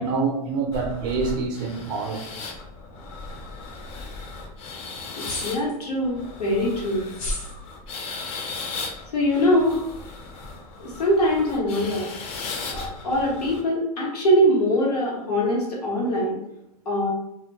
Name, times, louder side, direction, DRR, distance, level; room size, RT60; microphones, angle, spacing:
voice 1, 0.0-2.3 5.4-5.5, right 4 dB, 45° right, 2 dB, 0.4 m, -26 dB
sound 1, 0.7-13.6, left 3 dB, 35° left, 0.4 m, -37 dB
voice 2, 5.2-7.1 9.1-9.8 10.8-12.1 12.7-16.4 16.9-17.1, equal, 85° left, -3 dB, 0.9 m, -23 dB
sound 2, 5.2-5.8 7.1-7.5, left 1 dB, 65° left, 1.1 m, -31 dB
2.1 x 2.1 x 2.7 m, 0.86 s
hypercardioid pair, 115°, 19 cm